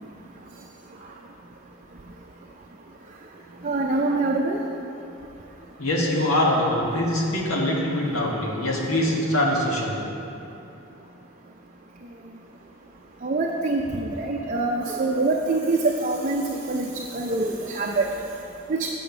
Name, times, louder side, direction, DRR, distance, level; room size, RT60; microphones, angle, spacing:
voice 1, 3.6-4.6 13.2-18.1 18.7-18.9, right 2 dB, 35° right, -1 dB, 0.5 m, -25 dB
voice 2, 5.8-10.0, left 1 dB, 85° left, -3 dB, 1.6 m, -23 dB
7.6 x 7.2 x 6.0 m, 2.9 s
head